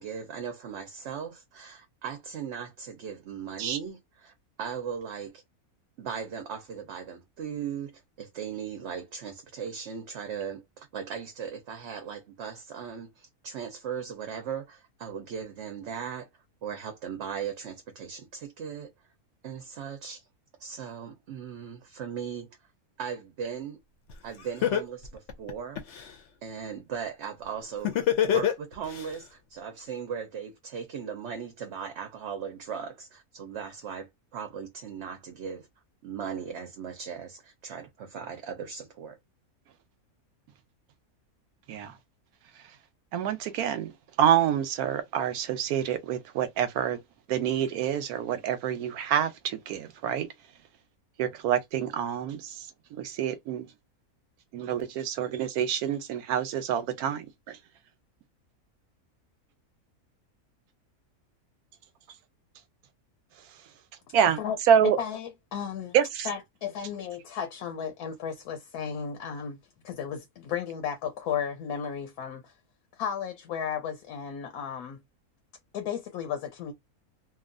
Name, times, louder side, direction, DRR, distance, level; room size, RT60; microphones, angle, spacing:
voice 1, 0.0-5.4 6.0-16.3 16.6-18.9 19.4-20.2 20.6-22.5 23.0-23.8 24.2-25.8 26.4-35.7 36.0-39.2, right 7 dB, 60° right, 0.8 m, -38 dB
Laughter, 24.1-24.2 24.6-26.1 27.8-29.0, left 10 dB, 60° left, 0.8 m, -24 dB
voice 2, 43.1-43.9 44.2-47.0 47.3-50.3 51.2-52.5 53.0-53.7 54.5-57.6 64.1-64.4 64.7-65.0 65.9-66.3, right 9 dB, 90° right, 1.1 m, -27 dB
voice 3, 64.8-66.0 66.2-69.6 69.8-72.5 72.9-75.0 75.7-76.7, left 8 dB, 80° left, 1.1 m, -34 dB
2.8 x 2.3 x 2.5 m
omnidirectional pair, 1.6 m